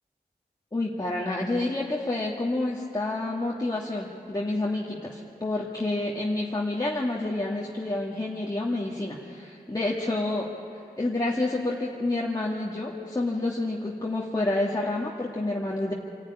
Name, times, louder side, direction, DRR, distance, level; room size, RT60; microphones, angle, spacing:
voice 1, 0.7-10.5 11.0-15.9, left 2 dB, 20° left, -3 dB, 1.7 m, -29 dB
26.0 x 11.5 x 9.6 m, 2.5 s
wide cardioid pair, 80°, 17 cm